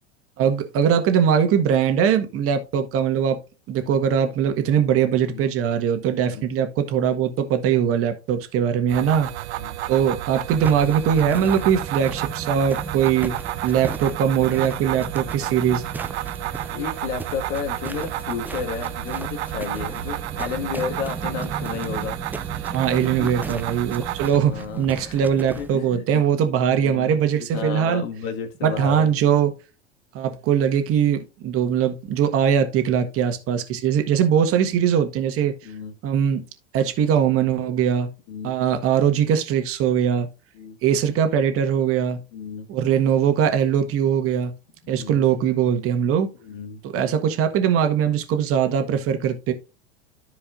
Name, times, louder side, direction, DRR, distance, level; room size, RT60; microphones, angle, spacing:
voice 1, 0.4-3.4 3.7-9.3 9.9-13.3 13.6-15.8 22.7-28.0 28.6-29.5 30.1-35.5 36.0-36.4 36.7-38.1 38.4-40.3 40.8-42.2 42.7-44.5 44.9-46.3 46.8-49.5, right 8 dB, 40° right, 1.5 m, -21 dB
sound 1, 8.9-24.3, right 14 dB, 70° right, 0.6 m, -31 dB
sound 2, 10.5-25.7, right 3 dB, 5° right, 0.3 m, -36 dB
voice 2, 16.7-22.2 23.0-23.3 24.4-25.2 25.6-26.2 26.7-29.1 34.6-34.7 35.6-35.9 38.3-38.6 40.5-40.8 42.3-42.7 44.8-45.2 46.4-46.8, left 6 dB, 55° left, 1.8 m, -32 dB
13.5 x 4.8 x 2.5 m
hypercardioid pair, 90°, 34 cm